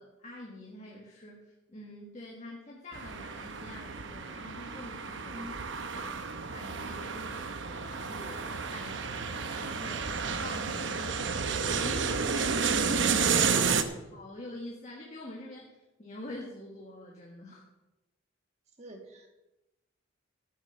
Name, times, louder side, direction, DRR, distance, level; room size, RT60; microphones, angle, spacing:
voice 1, 0.0-5.7 5.9-6.2 6.5-10.0 10.4-17.7, left 1 dB, 35° left, -2 dB, 1.7 m, -46 dB
sound 1, 2.9-13.8, right 5 dB, 60° right, 0.9 m, -31 dB
voice 2, 5.3-5.7 13.2-14.0 18.8-19.3, right 1 dB, 30° right, 3 dB, 1.9 m, -44 dB
14.0 x 7.5 x 6.6 m, 1.0 s
head